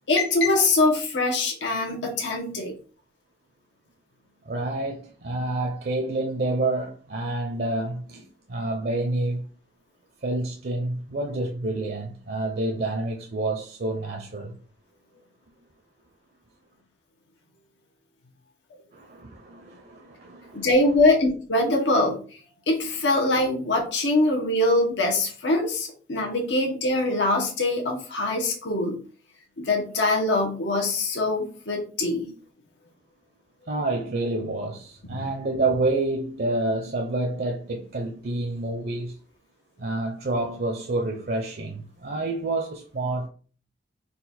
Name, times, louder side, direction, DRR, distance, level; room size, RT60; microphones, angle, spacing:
voice 1, 0.1-2.7 20.5-22.2 22.7-29.0 29.6-32.3 35.1-35.2, left 2 dB, 90° left, 1.0 m, -23 dB
voice 2, 4.4-9.5 10.2-14.6 18.9-20.7 33.7-39.2 39.8-43.3, right 2 dB, 55° right, 0.6 m, -28 dB
4.1 x 2.4 x 4.1 m
head